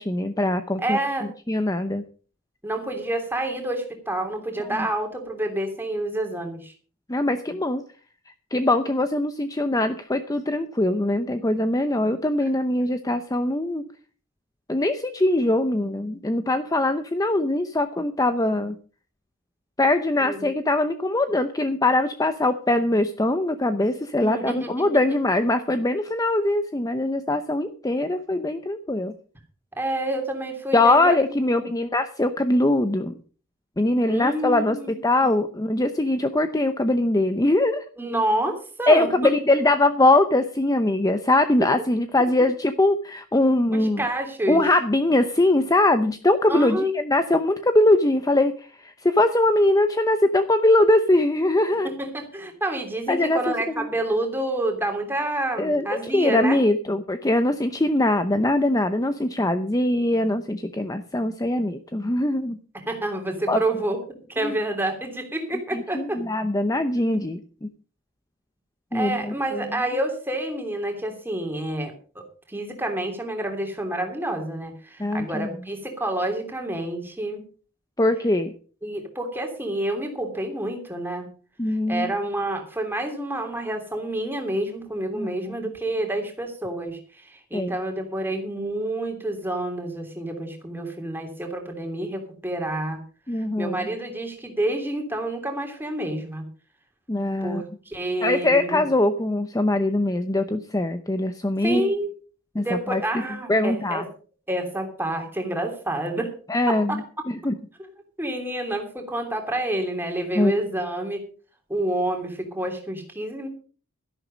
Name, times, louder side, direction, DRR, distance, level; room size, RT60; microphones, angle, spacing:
voice 1, 0.0-1.0 1.5-2.0 7.1-7.8 8.5-13.8 14.7-18.8 19.8-29.1 30.7-33.2 33.8-37.8 38.9-44.0 44.5-51.9 53.1-53.9 55.6-62.6 63.5-63.6 64.4-64.6 65.7-67.7 68.9-69.6 75.0-75.5 78.0-78.5 81.6-82.1 85.1-85.6 87.5-87.8 93.3-93.8 97.1-97.6 98.2-101.9 102.5-103.0 103.5-104.0 106.5-107.0 107.3-107.5 110.3-110.5, left 1 dB, 15° left, 9 dB, 0.7 m, -22 dB
voice 2, 0.8-1.3 2.6-6.7 20.2-20.5 24.2-24.9 29.8-31.7 34.1-35.5 38.0-39.3 43.7-44.6 46.5-46.9 51.8-56.6 62.7-64.0 64.3-66.2 68.9-72.2 72.5-77.4 78.8-81.3 81.7-93.0 93.3-96.4 97.4-98.8 101.6-102.1 102.6-104.0 104.5-106.3 106.7-107.0 108.2-111.2 111.7-113.5, right 1 dB, 10° right, 3 dB, 3.0 m, -28 dB
12.5 x 11.0 x 5.2 m, 0.40 s
head